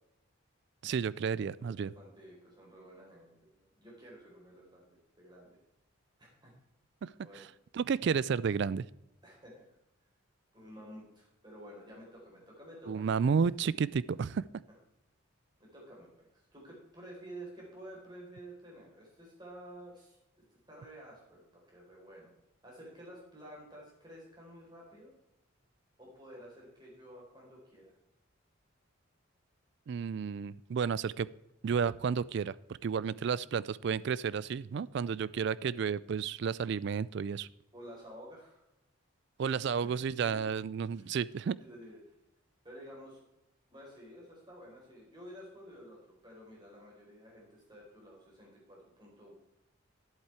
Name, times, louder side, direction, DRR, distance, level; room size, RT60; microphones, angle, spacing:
voice 1, 0.8-1.9 7.0-7.5 7.7-8.8 12.9-14.4 29.9-31.3 31.6-32.6 32.8-37.5 39.4-41.6, right 6 dB, 55° right, 20 dB, 0.3 m, -32 dB
voice 2, 1.6-4.9 5.2-5.6 6.2-6.5 7.2-7.5 9.2-9.6 10.5-13.3 15.6-20.2 20.7-22.3 22.6-25.1 26.0-27.9 37.7-38.6 40.0-40.4 40.9-41.2 41.6-42.0 42.6-43.2 43.7-49.3, equal, 20° right, -3 dB, 4.1 m, -51 dB
11.0 x 8.2 x 4.4 m, 0.88 s
head